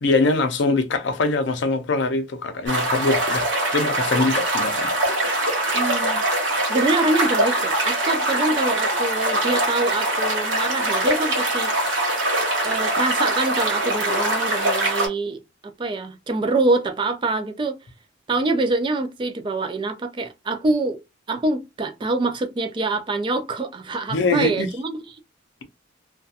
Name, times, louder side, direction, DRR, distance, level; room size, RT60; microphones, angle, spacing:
voice 1, 0.0-4.9 24.1-24.7, left 3 dB, 60° left, 0.5 m, -23 dB
sound 1, 2.7-15.1, right 1 dB, 65° right, 1.2 m, -23 dB
voice 2, 5.7-6.2 6.6-12.0 12.6-17.8 18.3-21.0 21.3-25.2, right 2 dB, 25° right, 0.3 m, -25 dB
2.7 x 2.2 x 2.4 m
head